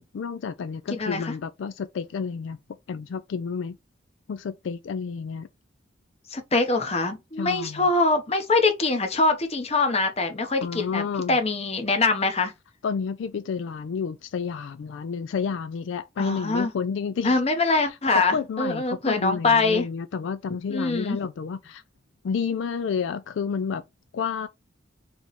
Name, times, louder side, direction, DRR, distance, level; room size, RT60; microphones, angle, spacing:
voice 1, 0.0-2.6 2.9-3.8 4.3-5.5 7.4-7.9 10.6-11.4 12.8-17.4 17.7-21.8 22.2-23.8 24.1-24.5, left 6 dB, 75° left, 0.3 m, -30 dB
voice 2, 0.9-1.3 6.3-11.0 11.3-12.5 16.2-16.7 17.2-19.9 20.7-21.2, left 3 dB, 35° left, 0.9 m, -23 dB
3.4 x 3.0 x 4.0 m
head